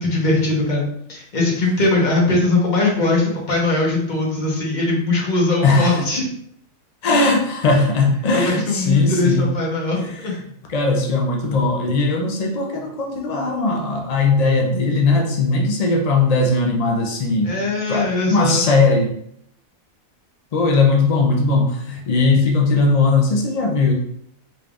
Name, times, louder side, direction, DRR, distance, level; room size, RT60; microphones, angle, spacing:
voice 1, 0.0-6.2 7.1-7.3 8.3-10.4 17.4-18.8, left 2 dB, 35° left, -2 dB, 1.0 m, -20 dB
voice 2, 5.6-6.0 7.0-9.5 9.9-10.3 10.7-17.6 17.9-19.1 20.5-23.9, left 3 dB, 75° left, 0 dB, 0.3 m, -18 dB
3.9 x 3.3 x 2.4 m, 0.69 s
omnidirectional pair, 1.4 m